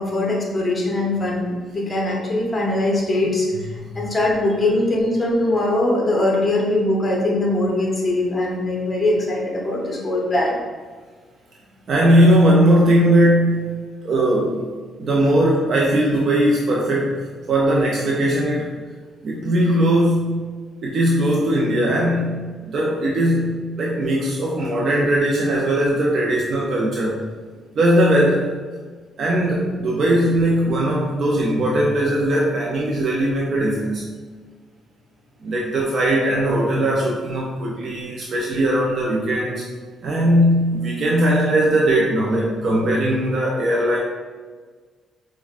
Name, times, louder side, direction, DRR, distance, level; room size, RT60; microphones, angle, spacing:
voice 1, 0.0-10.6, left 1 dB, 25° left, -3 dB, 0.9 m, -21 dB
voice 2, 11.9-13.7 14.0-14.6 15.0-18.8 19.2-20.4 20.8-22.4 22.7-27.2 27.7-28.6 29.2-34.1 35.4-39.7 40.0-44.0, right 1 dB, 60° right, -3 dB, 0.4 m, -19 dB
4.7 x 2.1 x 2.4 m, 1.5 s
cardioid pair, 90°, 0 cm